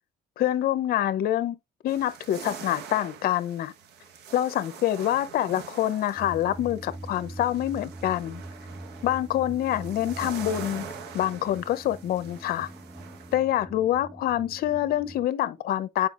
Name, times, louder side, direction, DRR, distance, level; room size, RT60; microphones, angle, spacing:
voice 1, 0.4-1.6 1.8-3.7 4.3-8.4 9.0-10.9 11.1-12.7 13.3-16.1, left 12 dB, 65° left, 0.7 m, -26 dB
sound 1, 1.9-13.4, right 6 dB, 80° right, 1.2 m, -44 dB
sound 2, 6.2-15.3, right 1 dB, 5° right, 0.4 m, -43 dB
8.9 x 4.9 x 2.5 m
cardioid pair, 110°, 17 cm